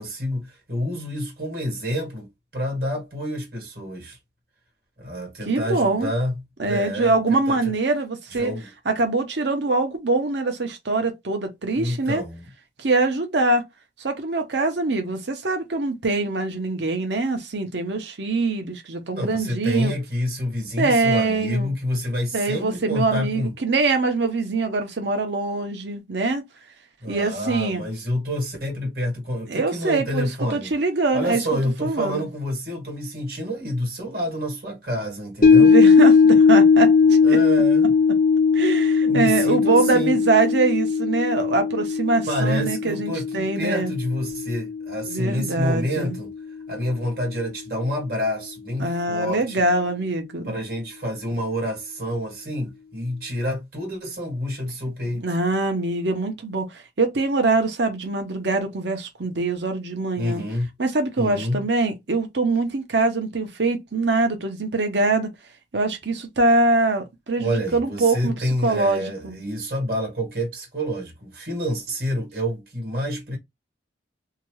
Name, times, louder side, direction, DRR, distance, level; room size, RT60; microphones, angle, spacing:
voice 1, 0.0-4.2 5.0-6.3 6.6-7.7 8.3-8.7 11.7-12.4 19.1-23.5 27.0-30.7 31.1-35.8 37.2-37.9 39.0-40.2 42.3-46.3 46.7-49.6 50.4-55.2 60.2-60.7 61.2-61.6 67.4-73.4, equal, 55° right, 1.6 m, -28 dB
voice 2, 5.5-6.1 6.6-8.5 8.9-12.2 12.8-13.6 14.0-19.9 20.8-21.7 22.3-26.4 27.1-27.8 29.5-31.4 31.8-32.2 35.6-37.4 38.5-43.9 45.1-46.2 48.8-50.5 55.2-60.4 60.8-65.3 65.7-68.4 68.6-69.4, right 3 dB, 75° right, 0.8 m, -23 dB
sound 1, 35.4-45.8 46.2-46.3, left 5 dB, 50° left, 0.9 m, -18 dB
2.8 x 2.3 x 3.1 m
head